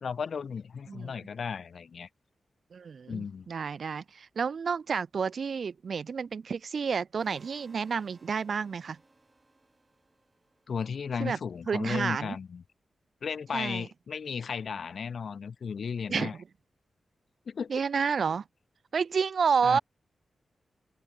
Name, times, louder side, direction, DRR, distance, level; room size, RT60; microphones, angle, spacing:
voice 1, 0.0-2.1 3.1-3.5 10.7-12.6 13.2-16.3 17.5-17.7 19.6-19.8, left 6 dB, 70° left, 0.4 m, -35 dB
voice 2, 2.7-9.0 11.2-11.4 11.7-12.4 13.5-13.9 16.1-16.3 17.7-18.4 18.9-19.8, right 6 dB, 65° right, 0.5 m, -30 dB
sound 1, 7.2-11.3, right 2 dB, 30° right, 6.9 m, -61 dB
cardioid pair, 65°, 0 cm